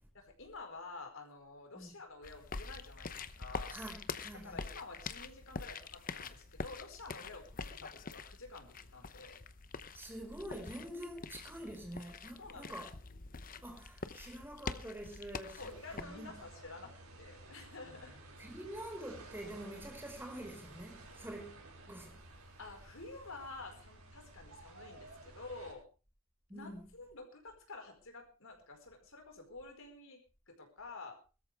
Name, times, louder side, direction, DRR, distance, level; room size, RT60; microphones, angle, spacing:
voice 1, 0.1-3.8 4.3-9.4 12.4-12.7 15.6-18.2 22.6-25.8 26.5-30.2 30.5-31.2, left 3 dB, 65° left, 4.9 m, -50 dB
sound 1, 2.2-16.0, left 4 dB, 40° left, 0.9 m, -45 dB
voice 2, 3.7-4.6 7.6-7.8 9.9-12.9 13.6-15.6 15.9-16.4 17.9-18.0 18.4-21.6 21.9-22.2 26.5-26.8, right 1 dB, 10° right, 4.9 m, -46 dB
sound 2, 15.6-25.7, right 2 dB, 80° right, 5.3 m, -54 dB
21.5 x 13.5 x 3.5 m
head